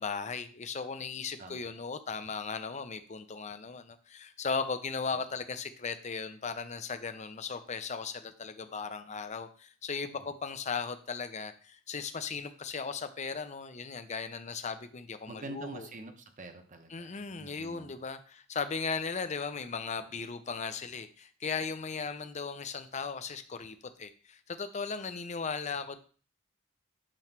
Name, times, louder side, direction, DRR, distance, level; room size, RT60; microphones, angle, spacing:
voice 1, 0.0-15.9 16.9-26.0, left 5 dB, 35° left, 10 dB, 0.6 m, -37 dB
voice 2, 1.4-1.8 5.1-5.2 15.3-17.9, right 2 dB, 40° right, 6 dB, 0.9 m, -46 dB
8.9 x 3.1 x 5.9 m, 0.40 s
head